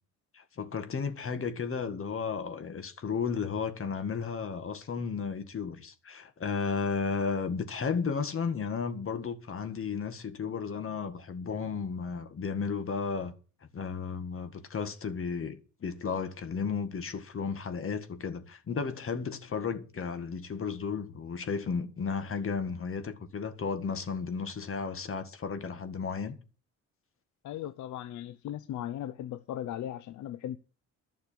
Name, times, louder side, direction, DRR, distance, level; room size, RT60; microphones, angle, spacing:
voice 1, 0.3-13.3 13.7-26.4, left 5 dB, 45° left, 1.8 m, -34 dB
voice 2, 27.4-30.6, left 11 dB, 75° left, 0.7 m, -37 dB
11.5 x 6.6 x 8.6 m
cardioid pair, 90°, 30 cm